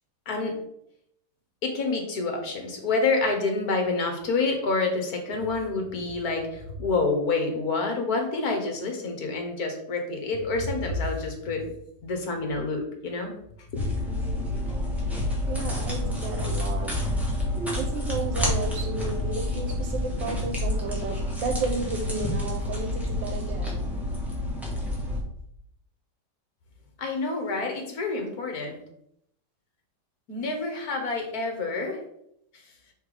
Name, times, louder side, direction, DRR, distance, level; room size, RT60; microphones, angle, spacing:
voice 1, 0.3-0.6 1.6-11.7 12.0-13.3 13.7-13.8 27.0-28.8 30.3-32.0, left 3 dB, 55° left, 2 dB, 1.7 m, -28 dB
sound 1, 13.7-25.2, left 1 dB, ahead, 1.6 m, -29 dB
voice 2, 15.5-17.1 17.7-24.0, right 4 dB, 90° right, 3 dB, 1.6 m, -33 dB
5.8 x 3.9 x 4.9 m, 0.73 s
omnidirectional pair, 2.0 m